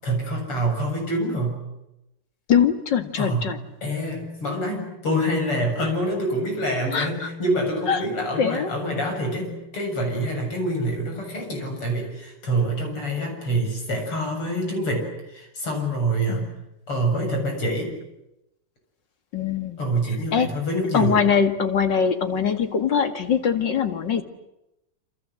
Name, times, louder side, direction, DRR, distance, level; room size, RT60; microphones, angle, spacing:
voice 1, 0.0-1.6 3.2-3.4 3.8-16.5 16.9-17.9 19.8-21.2, right 1 dB, 85° left, 2 dB, 8.5 m, -26 dB
voice 2, 2.5-3.6 6.9-7.3 7.9-8.1 8.4-8.7 16.3-16.5 19.3-19.8 20.3-20.5 20.9-24.2, left 7 dB, 55° left, 7 dB, 2.6 m, -22 dB
28.5 x 27.0 x 7.8 m, 0.88 s
omnidirectional pair, 2.4 m